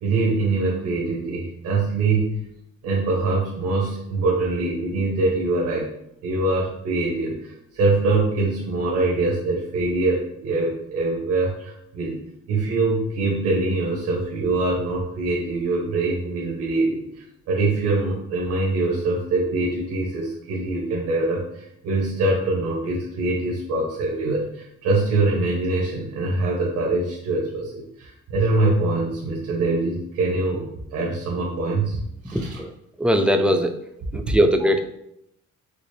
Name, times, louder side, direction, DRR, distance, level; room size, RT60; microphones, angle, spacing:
voice 1, 0.0-2.4 2.8-5.9 6.2-12.2 12.5-32.0 32.2-32.6, right 2 dB, 85° right, -3 dB, 1.1 m, -24 dB
voice 2, 32.3-33.8 34.1-34.8, equal, 5° right, 5 dB, 0.3 m, -21 dB
4.9 x 2.1 x 3.2 m, 0.76 s
cardioid pair, 90°, 30 cm